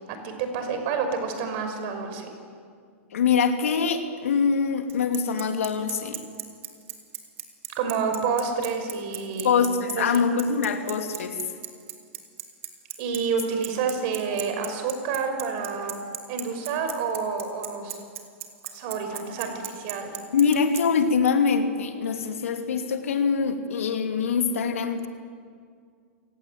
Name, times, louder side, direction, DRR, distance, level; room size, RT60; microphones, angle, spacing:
voice 1, 0.1-2.3 7.8-9.6 9.9-10.2 13.0-16.0 16.3-18.0 18.7-20.2, right 5 dB, 50° right, 6 dB, 5.7 m, -29 dB
voice 2, 3.1-6.2 9.4-11.4 20.3-25.1, left 6 dB, 75° left, 6 dB, 2.7 m, -24 dB
Bicycle, 4.9-20.8, right 12 dB, 70° right, 3.4 m, -35 dB
28.5 x 17.5 x 9.4 m, 2.2 s
hypercardioid pair, 115°, 7 cm